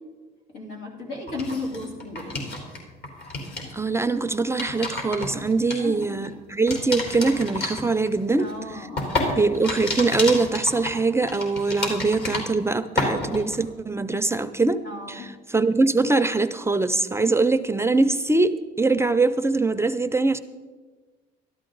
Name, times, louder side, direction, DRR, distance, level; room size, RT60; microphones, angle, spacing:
voice 1, 0.5-2.5 5.7-6.2 8.4-9.4 14.8-15.3, left 2 dB, 85° left, -1 dB, 3.0 m, -35 dB
sound 1, 1.3-2.8 3.0-3.7 4.3-6.3 6.7-12.7 13.0-13.6, left 2 dB, 55° left, 3.5 m, -30 dB
voice 2, 3.7-8.5 9.3-20.4, right 3 dB, 15° right, 11 dB, 0.5 m, -23 dB
13.0 x 12.5 x 3.9 m, 1.3 s
cardioid pair, 95°, 20 cm